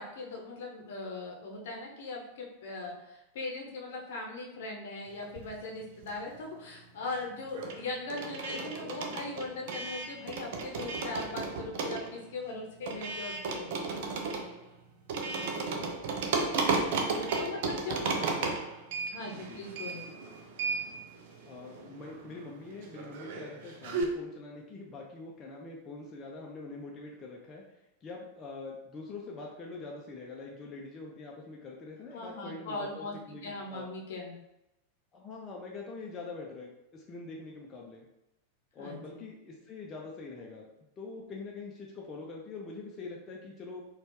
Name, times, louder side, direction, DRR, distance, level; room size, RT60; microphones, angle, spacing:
voice 1, 0.0-13.7 14.2-14.4 17.1-18.0 19.1-20.0 32.1-33.1 33.4-34.3 38.8-39.2, left 3 dB, 55° left, -1 dB, 0.8 m, -40 dB
sound 1, 5.2-6.5 6.7-24.0, right 4 dB, 50° right, 0.5 m, -35 dB
voice 2, 15.5-15.9 17.6-18.6 19.5-19.6 21.4-27.6 28.0-33.9 35.1-38.1 38.7-40.7 41.0-43.8, left 3 dB, 25° left, -2 dB, 0.6 m, -44 dB
4.1 x 2.4 x 3.1 m, 0.92 s
figure-of-eight pair, 90°, 0 cm